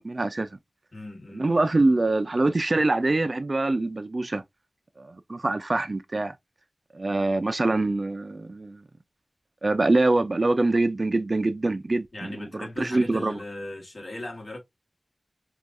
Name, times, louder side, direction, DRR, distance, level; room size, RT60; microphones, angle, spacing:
voice 1, 0.0-0.5 1.3-4.4 5.0-6.4 6.9-8.8 9.6-13.4, right 2 dB, 50° right, 0.4 m, -24 dB
voice 2, 0.9-1.6 12.1-14.6, left 2 dB, 60° left, 1.6 m, -38 dB
4.6 x 2.4 x 2.6 m
wide cardioid pair, 70°, 0 cm